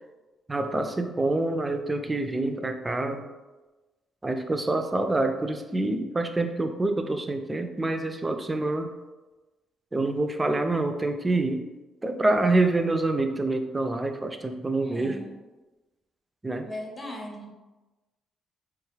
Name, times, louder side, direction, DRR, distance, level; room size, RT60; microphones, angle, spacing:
voice 1, 0.5-3.3 4.2-8.9 9.9-11.6 12.0-15.3 16.4-16.7, right 2 dB, 20° right, 6 dB, 0.3 m, -26 dB
voice 2, 14.7-15.3 16.6-17.5, left 1 dB, 25° left, 0 dB, 0.7 m, -38 dB
3.4 x 2.3 x 3.2 m, 1.1 s
cardioid pair, 90°, 0 cm